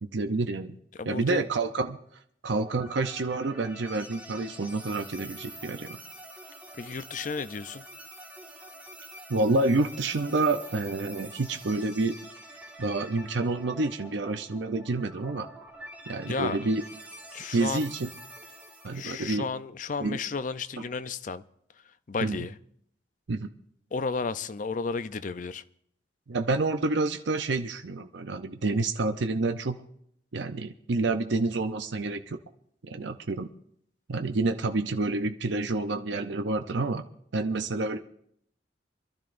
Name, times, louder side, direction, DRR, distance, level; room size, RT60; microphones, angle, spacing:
voice 1, 0.0-0.8 1.1-2.0 2.4-6.0 9.3-12.2 12.8-15.5 16.1-16.8 17.5-18.1 18.8-19.5 20.0-20.2 22.2-22.4 23.3-23.5 26.3-29.8 30.3-32.4 32.8-33.5 34.1-37.0 37.3-38.0, right 3 dB, 70° right, 7 dB, 0.6 m, -28 dB
voice 2, 1.0-1.4 6.8-7.8 16.3-16.6 17.3-17.8 18.9-21.4 22.1-22.5 23.9-25.6, left 4 dB, 45° left, 13 dB, 0.5 m, -33 dB
sound 1, 2.5-19.4, right 1 dB, 10° right, 1.6 m, -46 dB
26.0 x 12.5 x 2.6 m, 0.70 s
head